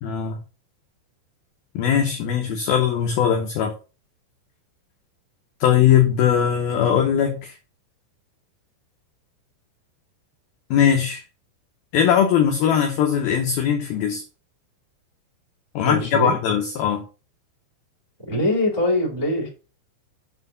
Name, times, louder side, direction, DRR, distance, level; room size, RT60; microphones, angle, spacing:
voice 1, 0.0-0.4 1.8-3.7 5.6-7.5 10.7-11.2 11.9-14.2 15.8-17.0, left 8 dB, 85° left, 4 dB, 2.1 m, -20 dB
voice 2, 15.8-16.4 18.3-19.5, left 1 dB, 10° right, -4 dB, 1.5 m, -23 dB
7.6 x 4.4 x 5.6 m, 0.33 s
omnidirectional pair, 5.6 m